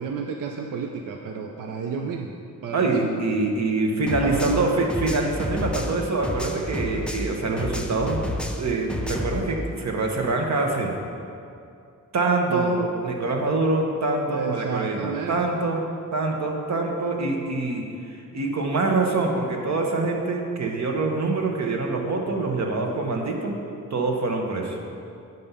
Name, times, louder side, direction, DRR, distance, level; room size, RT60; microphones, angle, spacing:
voice 1, 0.0-3.2 4.2-4.8 12.5-12.9 14.3-15.5, right 5 dB, 80° right, 3 dB, 0.6 m, -31 dB
voice 2, 2.7-8.2 8.6-11.1 12.1-15.8 16.1-23.6 23.9-24.8, right 3 dB, 55° right, 1 dB, 1.1 m, -25 dB
sound 1, 4.1-7.3 7.6-9.4, left 1 dB, 5° left, 0.4 m, -30 dB
9.3 x 5.4 x 5.5 m, 2.5 s
wide cardioid pair, 170°, 32 cm